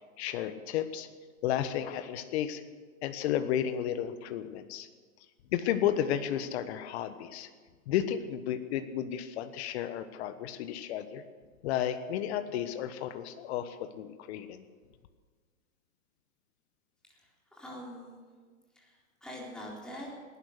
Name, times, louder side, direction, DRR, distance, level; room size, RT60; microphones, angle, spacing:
voice 1, 0.2-1.1 1.4-2.6 3.0-4.9 5.5-7.5 7.9-11.2 11.6-14.6, left 10 dB, 50° left, 10 dB, 1.3 m, -32 dB
voice 2, 17.1-18.2 18.7-20.1, equal, ahead, -4 dB, 4.0 m, -45 dB
19.0 x 11.0 x 6.6 m, 1.5 s
hypercardioid pair, 125°, 42 cm